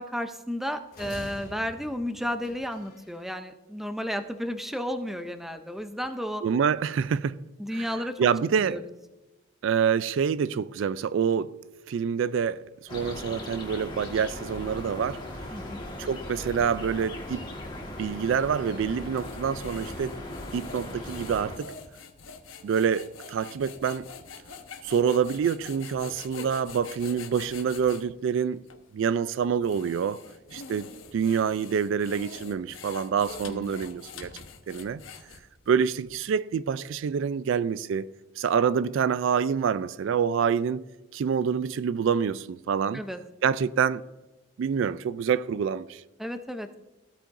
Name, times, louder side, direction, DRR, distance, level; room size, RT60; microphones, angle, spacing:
voice 1, 0.0-6.4 7.6-8.2 8.6-8.8 15.5-15.8 33.5-33.7 42.9-43.2 46.2-46.7, equal, ahead, 0.5 m, -33 dB
sound 1, 0.9-3.2, left 1 dB, 45° left, 2.5 m, -45 dB
voice 2, 6.4-7.4 7.8-7.9 8.2-8.8 9.6-11.5 11.9-15.2 16.0-17.4 18.0-20.1 20.5-21.7 22.6-24.1 24.8-28.6 28.9-30.2 30.5-34.3 34.7-35.0 35.7-38.1 38.4-40.9 41.1-43.0 43.4-44.0 44.6-46.0, right 7 dB, 65° right, 0.3 m, -26 dB
sound 2, 12.9-21.6, left 1 dB, 20° left, 1.5 m, -38 dB
sound 3, 18.9-28.0 28.7-28.8 29.4-35.7, left 5 dB, 70° left, 1.0 m, -45 dB
15.5 x 8.5 x 2.6 m
head